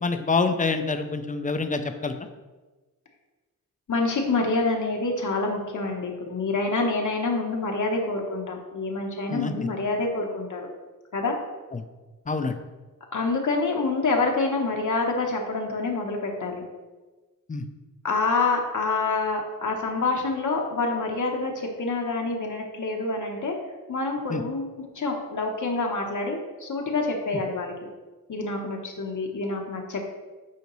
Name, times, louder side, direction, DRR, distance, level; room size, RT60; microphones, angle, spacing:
voice 1, 0.0-2.1 9.3-9.5 11.7-11.8 12.3-12.5 17.5-17.7 24.3-24.4, left 4 dB, 25° left, 8 dB, 0.5 m, -26 dB
voice 2, 3.9-10.7 11.1-11.4 13.1-16.6 18.0-23.5 23.9-27.7 28.3-30.1, left 3 dB, 60° left, 1 dB, 1.0 m, -27 dB
8.3 x 5.0 x 3.1 m, 1.2 s
wide cardioid pair, 125°, 35 cm